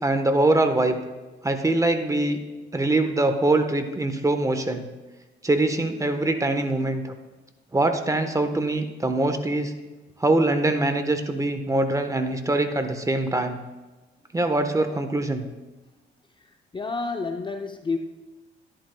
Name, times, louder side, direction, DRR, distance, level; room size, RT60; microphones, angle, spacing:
voice 1, 0.0-1.0 1.4-2.4 2.7-4.8 5.4-7.1 7.7-9.7 10.2-13.6 14.3-15.4, right 2 dB, 15° right, 7 dB, 1.1 m, -23 dB
voice 2, 16.7-18.0, left 4 dB, 25° left, 5 dB, 0.6 m, -29 dB
13.5 x 11.5 x 2.2 m, 1.2 s
cardioid pair, 90°, 20 cm